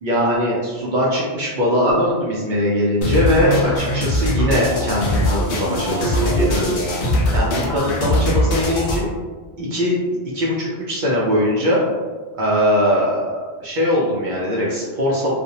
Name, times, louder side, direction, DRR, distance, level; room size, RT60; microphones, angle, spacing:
voice 1, 0.0-6.7 7.3-9.1 9.6-9.9 10.3-11.8 12.4-15.3, equal, 55° right, -4 dB, 0.6 m, -21 dB
sound 1, 3.0-9.0, left 1 dB, 60° left, 0.7 m, -21 dB
2.5 x 2.0 x 2.7 m, 1.4 s
omnidirectional pair, 1.1 m